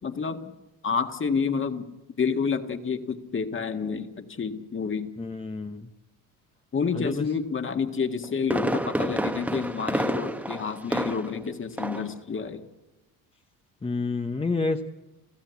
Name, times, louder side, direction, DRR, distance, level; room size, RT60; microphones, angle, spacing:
voice 1, 0.0-0.5 0.8-1.9 2.2-5.1 6.7-12.6, left 5 dB, 30° left, 7 dB, 1.8 m, -29 dB
voice 2, 5.2-5.9 6.9-7.3 13.8-14.8, left 3 dB, 15° left, 6 dB, 0.9 m, -29 dB
Fireworks, 8.0-11.5 11.8-12.1 12.5-12.6, right 1 dB, 5° right, 1.1 m, -29 dB
30.0 x 16.0 x 8.3 m, 1.1 s
cardioid pair, 105°, 40 cm